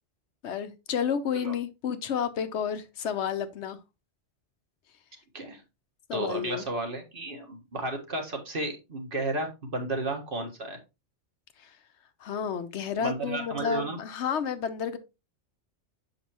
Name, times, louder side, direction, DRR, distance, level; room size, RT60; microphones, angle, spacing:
voice 1, 0.4-3.8 6.1-6.6 11.6-11.7 12.2-15.0, left 7 dB, 75° left, 1.0 m, -31 dB
voice 2, 6.1-10.8 13.0-14.0, right 2 dB, 50° right, 1.7 m, -33 dB
7.3 x 5.4 x 2.9 m
omnidirectional pair, 1.2 m